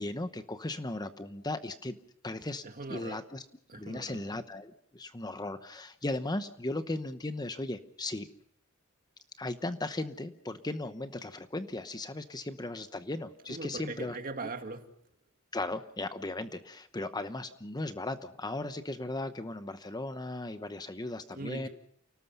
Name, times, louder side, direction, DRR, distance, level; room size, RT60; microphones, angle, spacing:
voice 1, 0.0-2.0 2.2-2.6 2.9-3.4 3.7-8.3 9.4-14.1 15.5-21.7, left 2 dB, 20° left, 10 dB, 0.9 m, -37 dB
voice 2, 2.6-3.2 3.7-4.2 13.5-14.9 21.3-21.7, right 3 dB, 45° right, 6 dB, 2.2 m, -40 dB
29.0 x 18.5 x 5.5 m, 0.66 s
head